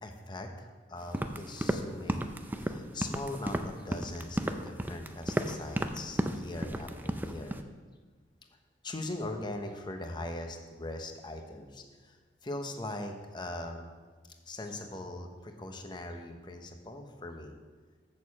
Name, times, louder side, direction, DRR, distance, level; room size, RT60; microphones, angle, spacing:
voice 1, 0.0-7.6 8.8-13.9 14.5-17.5, left 2 dB, 25° left, 4 dB, 0.8 m, -41 dB
sound 1, 1.0-7.6, right 1 dB, 10° right, 0.4 m, -33 dB
6.6 x 6.5 x 7.2 m, 1.4 s
head